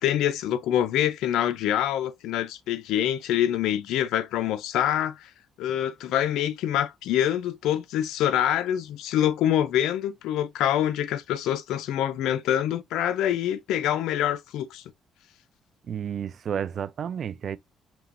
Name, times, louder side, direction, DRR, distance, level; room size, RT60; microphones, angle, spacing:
voice 1, 0.0-5.3 5.6-14.8, left 11 dB, 90° left, 0.4 m, -25 dB
voice 2, 15.9-17.6, right 8 dB, 60° right, 0.4 m, -31 dB
5.3 x 2.8 x 2.4 m
cardioid pair, 90°, 0 cm